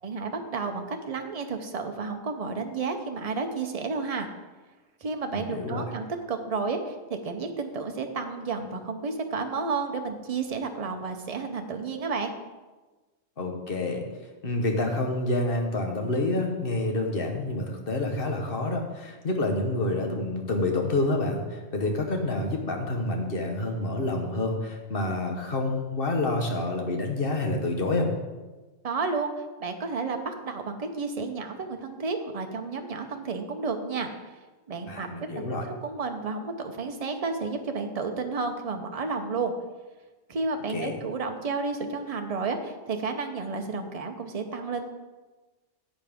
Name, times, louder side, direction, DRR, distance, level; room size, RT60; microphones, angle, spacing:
voice 1, 0.0-4.3 5.0-12.3 28.8-29.3 29.6-34.1 34.7-35.1 35.3-35.4 35.8-39.5 40.3-44.9, right 4 dB, 35° right, 5 dB, 0.8 m, -31 dB
voice 2, 5.3-5.9 13.4-14.0 14.4-28.1 34.9-35.7 40.7-41.0, left 2 dB, 50° left, 3 dB, 1.4 m, -28 dB
10.5 x 7.9 x 3.6 m, 1.2 s
omnidirectional pair, 1.3 m